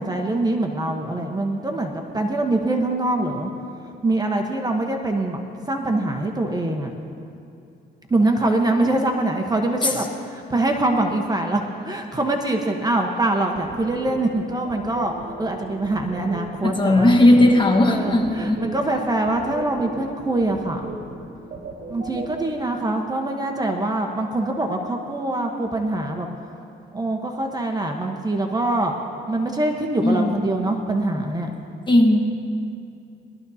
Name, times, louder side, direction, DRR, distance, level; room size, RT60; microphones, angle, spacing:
voice 1, 0.0-3.5 4.0-5.4 5.7-6.9 8.1-15.1 15.4-17.1 17.9-20.9 21.9-26.3 26.9-28.9 29.3-31.5, right 2 dB, 20° right, 3 dB, 1.1 m, -24 dB
sound 1, 13.5-22.5, right 3 dB, 50° right, 3.5 m, -37 dB
voice 2, 16.6-18.6 30.0-30.6 31.9-32.2, left 1 dB, 25° left, 3 dB, 1.4 m, -17 dB
20.5 x 13.0 x 2.8 m, 2.6 s
cardioid pair, 90°, 20 cm